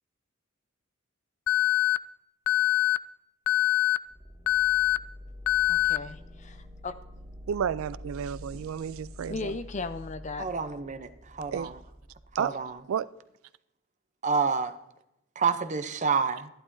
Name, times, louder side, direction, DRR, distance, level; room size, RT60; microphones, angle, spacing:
Alarm, 1.5-2.0 2.5-3.0 3.5-4.0 4.5-5.0 5.5-6.0, left 16 dB, 80° left, 0.3 m, -23 dB
sound 1, 4.1-12.8, left 1 dB, 15° right, 1.3 m, -47 dB
voice 1, 5.7-6.6 6.8-6.9 8.5-8.7 9.3-10.5, left 3 dB, 35° left, 0.5 m, -36 dB
voice 2, 7.5-9.5 11.5-11.7 12.4-12.5 12.9-13.1, right 8 dB, 80° right, 0.3 m, -31 dB
voice 3, 10.4-11.8 12.3-12.8 14.2-14.7 15.4-16.5, right 5 dB, 35° right, 0.6 m, -28 dB
12.0 x 11.5 x 2.7 m
head